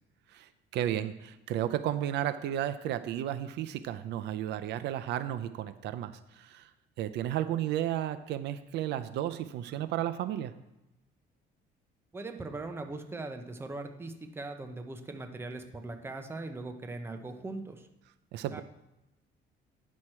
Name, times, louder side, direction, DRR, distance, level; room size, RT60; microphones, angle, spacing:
voice 1, 0.3-6.7 7.0-10.5 18.3-18.6, right 11 dB, 70° right, 12 dB, 0.5 m, -33 dB
voice 2, 12.1-17.9 18.5-18.6, right 2 dB, 15° right, 6 dB, 0.7 m, -40 dB
9.5 x 6.4 x 4.3 m, 0.93 s
cardioid pair, 150°, 18 cm